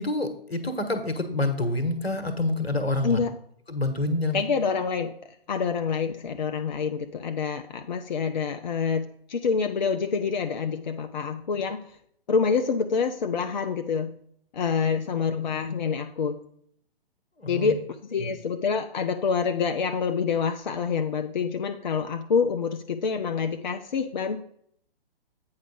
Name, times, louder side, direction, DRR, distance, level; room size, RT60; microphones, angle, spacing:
voice 1, 0.0-3.2 3.7-4.4 17.4-17.7 18.2-18.3, left 2 dB, 80° left, 8 dB, 1.3 m, -27 dB
voice 2, 3.0-3.4 4.3-5.1 5.5-11.8 12.3-14.1 14.5-16.4 17.5-24.4, left 5 dB, 50° left, 7 dB, 0.5 m, -27 dB
8.3 x 4.9 x 4.9 m, 0.67 s
figure-of-eight pair, 125°, 30 cm